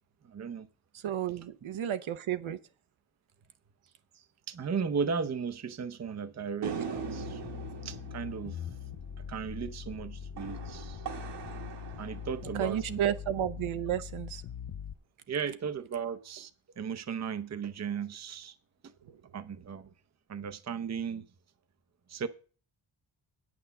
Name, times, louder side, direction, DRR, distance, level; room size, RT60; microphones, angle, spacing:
voice 1, 0.2-0.7 4.5-7.4 7.8-8.7 9.3-11.0 12.0-13.1 15.3-16.5 16.8-18.6 18.8-18.9 19.3-19.9 20.3-21.3 22.1-22.3, right 6 dB, 35° right, 0.6 m, -36 dB
voice 2, 0.9-2.6 12.5-14.4 19.0-19.2, right 10 dB, 75° right, 0.8 m, -32 dB
sound 1, 6.6-13.1, right 6 dB, 55° right, 1.3 m, -41 dB
sound 2, 6.9-14.9, left 9 dB, 40° left, 0.5 m, -42 dB
9.0 x 6.1 x 6.9 m
wide cardioid pair, 135°, 49 cm